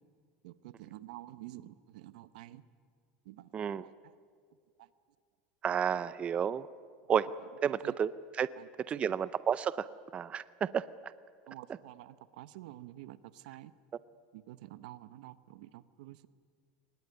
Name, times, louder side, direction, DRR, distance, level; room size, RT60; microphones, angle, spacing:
voice 1, 0.4-2.6 3.3-3.5 3.8-3.9 7.6-7.9 8.6-8.7 8.9-9.1 11.5-13.7 14.3-16.3, right 15 dB, 80° right, 15 dB, 0.9 m, -49 dB
voice 2, 3.5-3.8 5.6-6.7 7.1-7.3 7.6-8.5 8.9-9.9 10.1-11.1, right 8 dB, 30° right, 16 dB, 0.6 m, -31 dB
23.0 x 20.0 x 9.6 m, 2.1 s
supercardioid pair, 125°, 4 cm